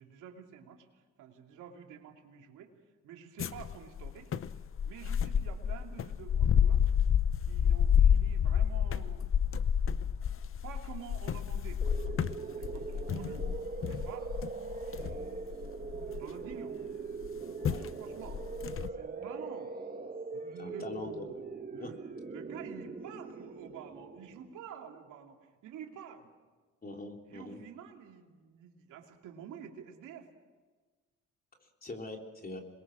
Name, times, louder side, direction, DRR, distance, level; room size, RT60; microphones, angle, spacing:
voice 1, 0.0-2.7 3.0-4.3 4.8-6.9 7.4-9.4 10.6-13.5 13.9-14.4 14.9-15.6 15.9-16.8 17.4-18.4 18.9-19.7 20.3-20.9 21.3-21.4 21.7-22.0 22.3-26.3 27.3-30.3, right 8 dB, 85° right, 3 dB, 2.7 m, -49 dB
sound 1, 3.4-16.5 17.2-17.4 17.6-17.9 18.3-18.9, left 8 dB, 45° left, 0.8 m, -29 dB
sound 2, 11.8-24.6, right 4 dB, 30° right, 1.8 m, -41 dB
voice 2, 20.6-21.3 21.8-21.9 26.8-27.6 31.6-32.6, left 2 dB, 30° left, 2 dB, 3.5 m, -43 dB
27.5 x 21.5 x 6.3 m, 1.3 s
cardioid pair, 90°, 30 cm